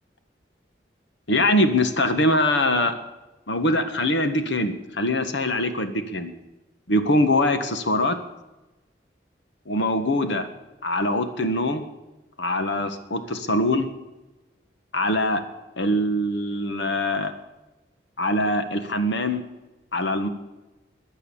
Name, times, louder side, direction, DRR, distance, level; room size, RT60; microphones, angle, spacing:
voice 1, 1.3-3.0 3.5-6.3 6.9-8.2 9.7-10.5 10.8-11.8 12.4-13.9 14.9-15.4 15.8-17.3 18.2-19.4 19.9-20.3, left 1 dB, 90° left, 9 dB, 1.5 m, -23 dB
22.0 x 8.2 x 7.2 m, 1.1 s
head